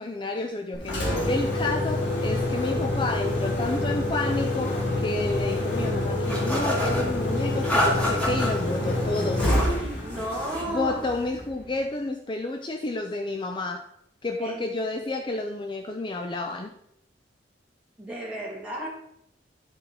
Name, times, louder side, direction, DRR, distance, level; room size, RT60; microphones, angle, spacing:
voice 1, 0.0-9.6 10.7-13.9 14.2-16.7, left 2 dB, 25° left, 5 dB, 0.5 m, -30 dB
Engine, 0.7-11.7, left 1 dB, 80° left, 2.5 m, -27 dB
sound 1, 6.3-7.1 7.6-8.5 9.1-9.8 10.1-10.7, equal, 10° left, 1.9 m, -28 dB
voice 2, 10.0-11.1 14.4-14.6 18.0-18.9, right 1 dB, 5° right, -5 dB, 2.4 m, -33 dB
10.0 x 4.5 x 4.8 m, 0.77 s
head